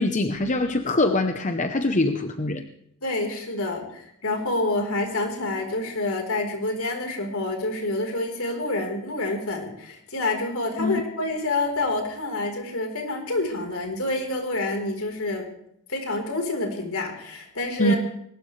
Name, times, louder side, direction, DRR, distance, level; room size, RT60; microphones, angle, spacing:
voice 1, 0.0-2.6 10.8-11.0 17.8-17.9, left 2 dB, 35° left, 6 dB, 0.9 m, -23 dB
voice 2, 3.0-15.5 15.9-18.0, left 2 dB, 70° left, 2 dB, 4.2 m, -28 dB
21.5 x 19.0 x 3.3 m, 0.74 s
head